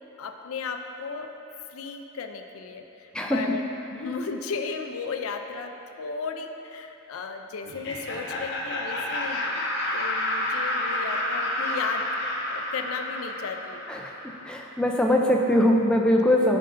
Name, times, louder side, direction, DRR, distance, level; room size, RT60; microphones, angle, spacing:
voice 1, 0.2-1.3 1.7-3.6 3.9-9.7 9.9-12.1 12.5-13.8, left 5 dB, 75° left, 6 dB, 0.4 m, -35 dB
Laughter, 7.6-14.4, left 1 dB, 50° left, 0.8 m, -30 dB
voice 2, 14.4-16.6, left 1 dB, 5° left, 0 dB, 0.3 m, -21 dB
10.0 x 5.3 x 2.6 m, 3.0 s
head